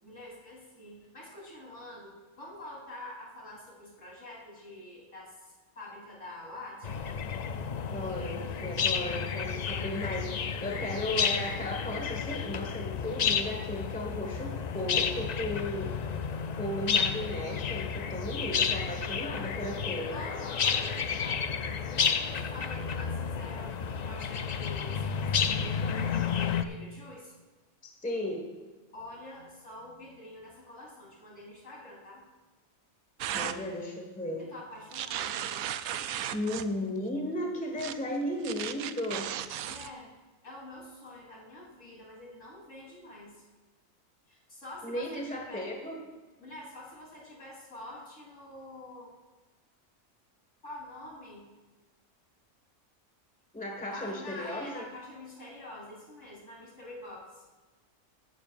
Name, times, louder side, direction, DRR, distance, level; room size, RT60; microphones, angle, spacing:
voice 1, 0.0-7.0 20.1-21.6 21.9-27.3 28.9-32.2 34.4-35.7 39.6-40.1 40.4-43.4 44.3-45.7 46.4-49.1 50.6-51.4 53.9-57.4, left 1 dB, 65° left, -5 dB, 4.0 m, -46 dB
sound 1, 6.8-26.6, left 6 dB, 80° left, 0.3 m, -31 dB
voice 2, 7.9-15.9 16.6-20.2 28.0-28.4 33.3-34.4 36.3-39.3 44.8-46.0 53.5-54.8, left 1 dB, 5° left, 1 dB, 1.5 m, -35 dB
sound 2, 33.2-33.6 34.9-36.7 37.8-37.9 38.4-39.9, right 10 dB, 80° right, 1.0 m, -35 dB
16.0 x 12.0 x 2.5 m, 1.3 s
omnidirectional pair, 1.4 m